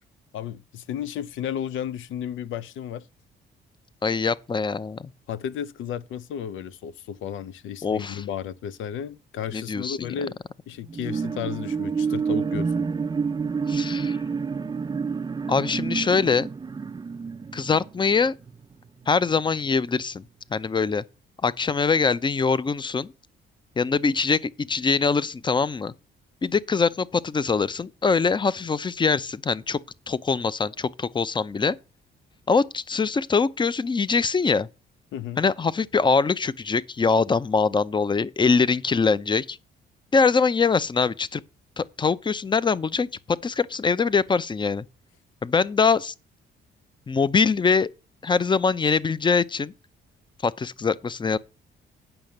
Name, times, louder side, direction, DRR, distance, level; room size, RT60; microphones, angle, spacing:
voice 1, 0.3-3.1 5.3-12.8 35.1-35.4, left 9 dB, 80° left, 0.7 m, -33 dB
voice 2, 4.0-5.1 7.8-8.2 9.5-10.1 13.7-14.2 15.5-16.5 17.5-18.3 19.1-20.2 20.5-21.0 21.4-23.1 23.8-25.9 26.4-29.8 30.1-31.8 32.5-34.7 35.4-39.6 40.1-41.4 41.8-44.8 45.4-46.1 47.1-47.9 48.2-49.7 50.4-51.4, left 5 dB, 25° left, 0.6 m, -23 dB
sound 1, 10.8-18.6 19.1-19.2, right 5 dB, 20° right, 0.5 m, -28 dB
8.9 x 5.8 x 6.5 m
cardioid pair, 90°, 20 cm